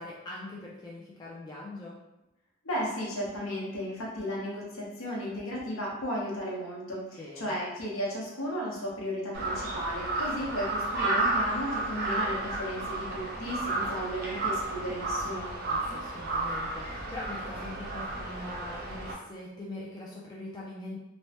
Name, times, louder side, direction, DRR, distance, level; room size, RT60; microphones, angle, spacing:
voice 1, 0.0-2.0 7.2-7.6 15.7-21.0, left 2 dB, 20° left, -5 dB, 0.3 m, -42 dB
voice 2, 2.6-15.5, equal, 75° left, -4 dB, 0.9 m, -34 dB
Crow, 9.3-19.1, right 2 dB, 45° right, 0.6 m, -32 dB
3.1 x 2.1 x 2.8 m, 0.97 s
head